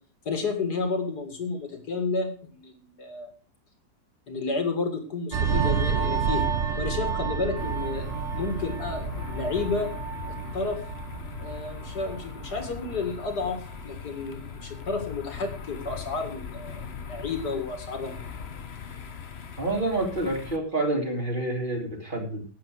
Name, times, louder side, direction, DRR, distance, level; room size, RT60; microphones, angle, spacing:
voice 1, 0.3-3.3 4.3-6.5 6.8-9.9 10.3-10.8 11.4-18.2, left 4 dB, 65° left, 6 dB, 2.6 m, -31 dB
sound 1, 5.3-14.4 14.7-15.0, right 6 dB, 50° right, 1.1 m, -30 dB
sound 2, 7.6-20.6, left 6 dB, 45° left, 1.1 m, -40 dB
voice 2, 19.6-22.4, right 2 dB, 30° right, 1 dB, 3.0 m, -28 dB
11.5 x 8.0 x 6.4 m, 0.41 s
omnidirectional pair, 1.8 m